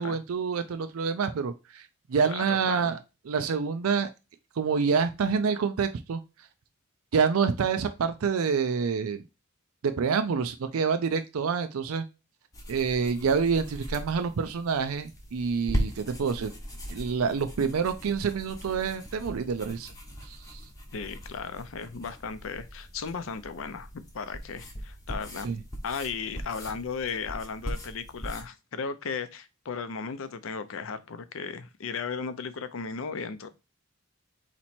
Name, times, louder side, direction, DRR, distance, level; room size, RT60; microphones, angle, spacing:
voice 1, 0.0-3.0 3.3-4.1 4.6-6.2 7.1-9.2 9.8-12.0 12.7-16.5 16.9-19.9 20.3-20.6 25.4-25.6, right 5 dB, 90° right, 9 dB, 0.4 m, -27 dB
voice 2, 2.2-2.9 20.9-23.9 24.1-25.5 25.8-33.5, left 5 dB, 70° left, 12 dB, 0.5 m, -36 dB
sound 1, 12.5-28.4, equal, 15° left, 0.9 m, -39 dB
4.1 x 3.0 x 4.2 m, 0.27 s
head